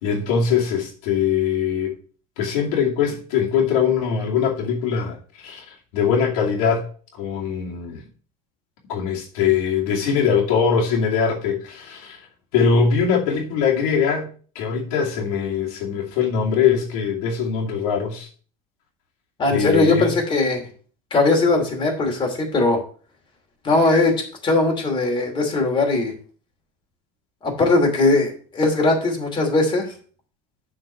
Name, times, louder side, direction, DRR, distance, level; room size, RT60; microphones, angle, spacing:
voice 1, 0.0-2.0 2.4-5.2 5.4-5.6 5.9-6.9 7.2-8.0 8.9-12.2 12.5-14.3 14.5-18.3 19.5-20.1, left 6 dB, 85° left, 2.6 m, -21 dB
voice 2, 19.4-20.6 21.1-22.8 23.6-24.1 24.4-26.1 27.4-29.9, left 2 dB, 25° left, 2.7 m, -19 dB
7.6 x 4.6 x 6.8 m
cardioid pair, 135°, 18 cm